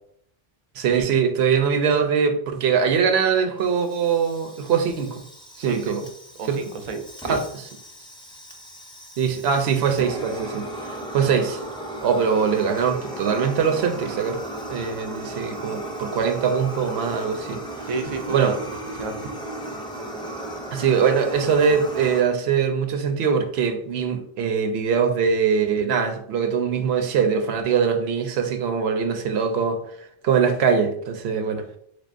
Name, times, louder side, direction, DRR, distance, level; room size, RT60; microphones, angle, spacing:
voice 1, 0.8-5.2 5.6-6.0 6.5-6.6 7.3-7.4 9.2-11.6 12.0-14.4 14.7-17.6 18.3-18.6 20.7-29.8 30.2-31.6, right 6 dB, 85° right, 0.9 m, -22 dB
Fire, 3.6-22.2, right 1 dB, 5° left, 0.5 m, -36 dB
voice 2, 5.6-6.0 6.4-7.4 17.8-19.3, right 4 dB, 45° right, 0.5 m, -32 dB
3.8 x 3.4 x 2.5 m
omnidirectional pair, 1.0 m